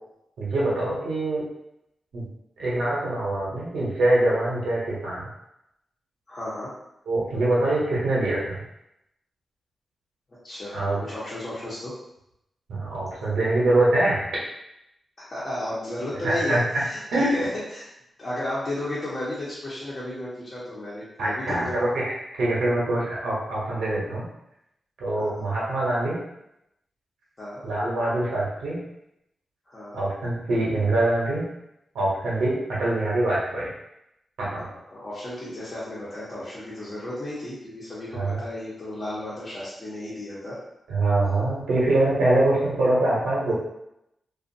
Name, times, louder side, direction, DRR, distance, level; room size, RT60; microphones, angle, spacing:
voice 1, 0.4-1.4 2.1-2.3 2.6-5.2 7.1-8.6 10.7-11.0 12.7-14.2 16.2-16.6 17.1-17.4 21.2-22.0 22.4-24.3 25.0-26.2 27.6-28.8 29.9-31.4 31.9-33.7 34.4-34.6 38.1-38.4 40.9-43.5, right 2 dB, 90° right, -6 dB, 0.9 m, -24 dB
voice 2, 6.3-6.8 10.4-12.0 15.2-17.9 18.2-21.8 25.1-25.4 27.4-27.6 29.7-30.0 34.9-40.6, left 1 dB, 50° left, -9 dB, 0.9 m, -33 dB
2.5 x 2.4 x 2.6 m, 0.82 s
cardioid pair, 55°, 0 cm